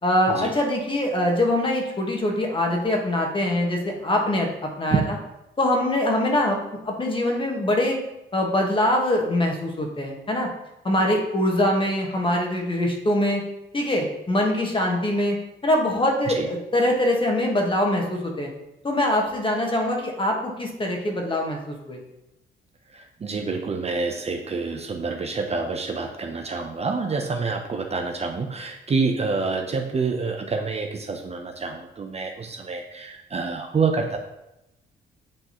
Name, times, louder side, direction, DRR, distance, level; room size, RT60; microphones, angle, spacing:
voice 1, 0.0-5.1 5.6-6.6 6.8-8.0 8.3-10.5 10.8-13.4 13.7-15.4 15.6-18.5 18.8-22.0, left 1 dB, 25° left, 1 dB, 1.5 m, -23 dB
voice 2, 22.9-34.2, right 4 dB, 30° right, 3 dB, 0.7 m, -27 dB
8.5 x 3.8 x 3.0 m, 0.91 s
cardioid pair, 90°, 20 cm